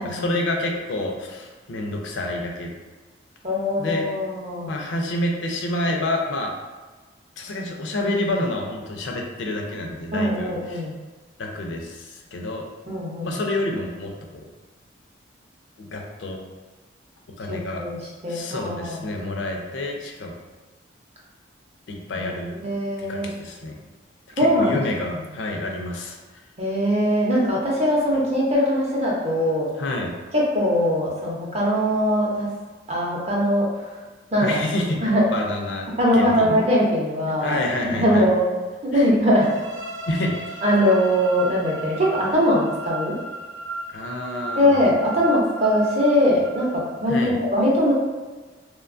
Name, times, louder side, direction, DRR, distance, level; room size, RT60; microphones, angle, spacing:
voice 1, 0.0-2.7 3.8-4.1 4.7-6.5 7.4-10.9 11.4-12.7 13.2-14.4 15.8-16.4 17.4-17.8 18.3-20.3 21.9-22.5 23.0-23.8 24.4-26.4 29.8-30.1 34.4-36.6 37.4-38.3 38.9-39.0 40.1-40.6 43.9-44.8 47.0-47.3, left 1 dB, 70° left, 1 dB, 0.4 m, -28 dB
voice 2, 3.4-4.7 10.1-10.9 12.9-13.3 17.5-18.0 18.2-19.0 22.2-22.3 22.6-23.3 24.4-24.8 26.6-29.7 30.3-32.5 32.9-33.7 34.3-34.6 35.0-35.2 35.9-37.6 37.8-38.4 38.9-39.5 40.6-43.1 44.6-47.9, equal, 35° right, -4 dB, 0.6 m, -21 dB
sound 1, 39.4-47.2, right 2 dB, 85° right, 0.8 m, -36 dB
2.9 x 2.2 x 2.5 m, 1.3 s
head